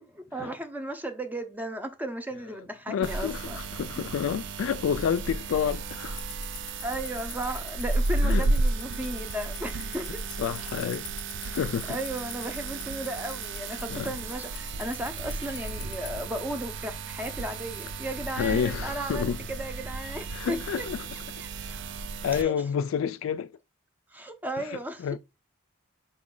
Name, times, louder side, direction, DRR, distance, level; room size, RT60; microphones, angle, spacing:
voice 1, 0.0-3.6 4.0-4.1 6.8-10.1 11.4-11.6 11.9-20.8 21.4-21.8 22.3-22.5 24.1-25.1, right 1 dB, 10° right, 0.5 m, -35 dB
voice 2, 2.9-6.2 8.2-8.5 10.4-11.0 11.4-12.0 13.9-14.1 18.4-19.4 20.3-21.0 22.2-23.5 24.6-25.2, left 7 dB, 75° left, 0.3 m, -29 dB
sound 1, 3.0-22.4, right 3 dB, 60° right, 0.4 m, -33 dB
Tick-tock, 6.2-16.1, left 9 dB, 35° left, 0.7 m, -39 dB
4.8 x 2.3 x 3.6 m
head